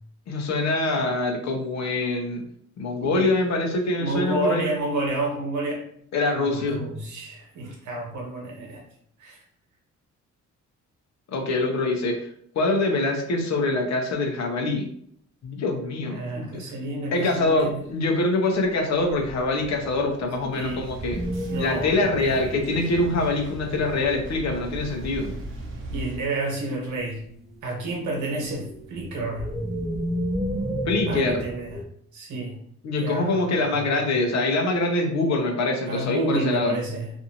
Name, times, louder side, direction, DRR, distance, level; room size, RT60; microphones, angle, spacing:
voice 1, 0.3-2.4 2.8-4.7 6.1-6.9 11.3-12.3 12.5-14.9 15.4-16.5 17.1-21.2 21.6-25.3 30.9-31.4 32.8-36.8, left 2 dB, 65° left, 3 dB, 0.8 m, -24 dB
voice 2, 4.0-5.8 6.3-8.8 9.2-9.4 16.0-17.8 20.5-20.9 21.5-22.4 25.9-27.2 27.6-29.5 31.1-31.8 32.1-32.6 33.0-34.0 35.9-37.1, right 2 dB, 75° right, -1 dB, 1.2 m, -30 dB
sound 1, 17.1-17.6 19.0-23.1 23.7-23.8 24.5-25.7 27.0-31.9, equal, ahead, 0.3 m, -33 dB
sound 2, 20.6-26.2, right 1 dB, 45° right, 0.7 m, -38 dB
2.6 x 2.6 x 2.8 m, 0.66 s
cardioid pair, 90°, 30 cm